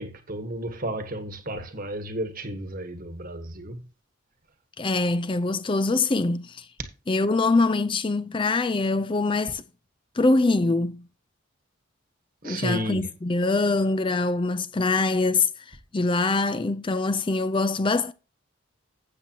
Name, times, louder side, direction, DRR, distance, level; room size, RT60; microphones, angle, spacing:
voice 1, 0.0-3.8 6.8-6.9 12.4-13.0, right 1 dB, 40° right, 1.4 m, -32 dB
voice 2, 4.8-6.7 7.1-9.6 10.1-11.0 12.4-18.1, left 3 dB, 25° left, 0.4 m, -24 dB
13.0 x 8.2 x 2.9 m
head